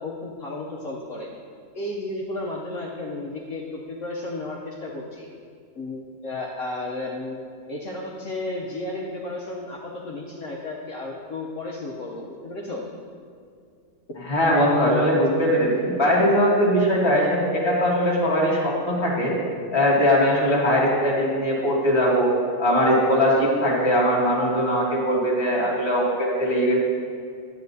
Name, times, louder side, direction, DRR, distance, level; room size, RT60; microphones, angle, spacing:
voice 1, 0.0-1.3 1.7-5.3 5.8-7.4 7.7-12.8 14.1-14.2, left 2 dB, 60° left, -3 dB, 1.0 m, -33 dB
voice 2, 14.3-19.3 19.7-22.3 22.6-26.8, equal, 20° left, -5 dB, 1.3 m, -20 dB
10.5 x 8.1 x 2.7 m, 2.3 s
omnidirectional pair, 1.6 m